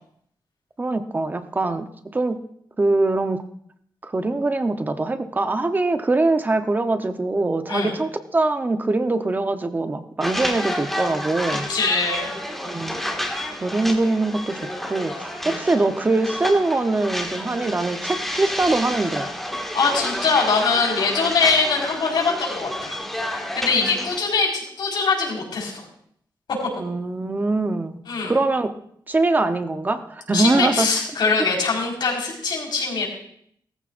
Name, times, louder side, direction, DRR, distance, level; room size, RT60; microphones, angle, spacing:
voice 1, 0.8-2.4 2.8-3.4 4.0-11.7 12.6-12.9 13.6-19.3 26.8-28.0 28.2-28.7 29.1-30.9, right 2 dB, 25° right, 8 dB, 0.9 m, -23 dB
sound 1, 10.2-24.2, left 1 dB, 5° left, 1.9 m, -30 dB
voice 2, 11.7-12.4 15.4-15.5 19.7-23.0 23.3-25.8 28.1-28.3 30.3-33.1, left 4 dB, 70° left, -2 dB, 4.7 m, -22 dB
19.0 x 14.5 x 2.6 m, 0.67 s
wide cardioid pair, 155°, 8 cm